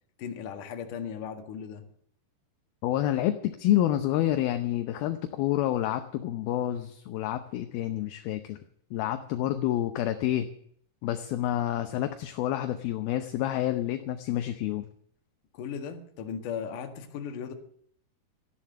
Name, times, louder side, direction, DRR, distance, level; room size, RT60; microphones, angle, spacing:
voice 1, 0.2-1.8 15.5-17.5, left 7 dB, 60° left, 6 dB, 2.9 m, -37 dB
voice 2, 2.8-8.6 8.9-10.5 11.0-14.9, left 13 dB, 75° left, 8 dB, 2.6 m, -28 dB
13.5 x 11.0 x 7.9 m, 0.64 s
omnidirectional pair, 4.7 m